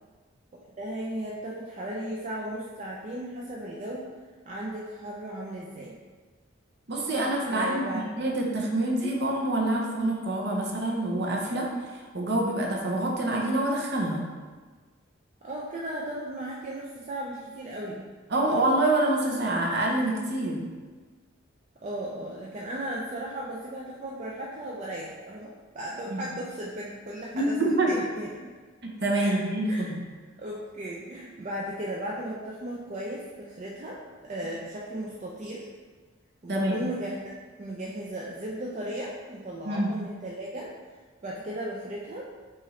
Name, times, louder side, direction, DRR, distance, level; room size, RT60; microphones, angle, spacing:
voice 1, 0.7-4.1 4.5-6.0 7.5-8.1 15.4-18.1 21.8-28.5 29.1-29.4 29.7-29.8 30.4-35.7 36.4-37.3 37.6-40.7 41.2-42.3, right 1 dB, 35° right, -4 dB, 0.4 m, -36 dB
voice 2, 6.9-11.7 12.1-14.2 18.3-20.6 26.1-26.2 27.3-27.9 28.8-30.0 36.5-36.8 39.6-39.9, right 1 dB, 55° right, -1 dB, 0.7 m, -26 dB
5.4 x 2.5 x 3.1 m, 1.4 s
head